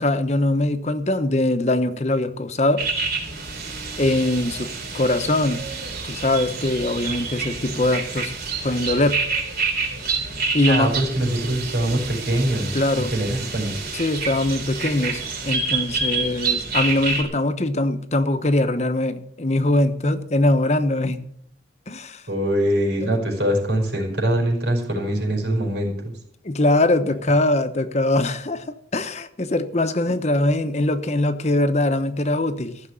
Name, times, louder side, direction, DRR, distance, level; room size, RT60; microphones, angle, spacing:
voice 1, 0.0-2.8 4.0-4.7 4.9-5.6 6.0-8.3 8.6-9.2 10.5-10.9 12.7-13.1 13.9-21.2 21.9-22.2 26.4-32.8, left 2 dB, 40° left, 10 dB, 0.9 m, -22 dB
sound 1, 2.8-17.2, right 4 dB, 60° right, 3.4 m, -28 dB
voice 2, 10.7-12.8 13.1-13.7 22.3-26.1, right 1 dB, 85° right, 1 dB, 5.1 m, -23 dB
15.0 x 6.6 x 9.0 m, 0.71 s
head